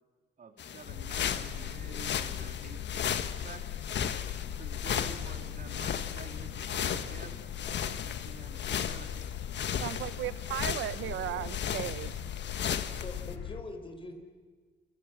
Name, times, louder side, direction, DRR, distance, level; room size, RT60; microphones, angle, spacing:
voice 1, 0.4-3.6 4.6-9.1, right 5 dB, 45° right, 6 dB, 3.1 m, -49 dB
sound 1, 0.6-13.4, left 8 dB, 65° left, 1.5 m, -36 dB
sound 2, 0.9-13.6, left 9 dB, 90° left, 1.5 m, -40 dB
voice 2, 9.8-12.2, right 13 dB, 75° right, 17 dB, 0.7 m, -36 dB
voice 3, 11.0-11.5 12.9-14.1, left 2 dB, 25° left, 5 dB, 4.8 m, -44 dB
29.5 x 25.0 x 7.4 m, 1.5 s
cardioid pair, 90°, 20 cm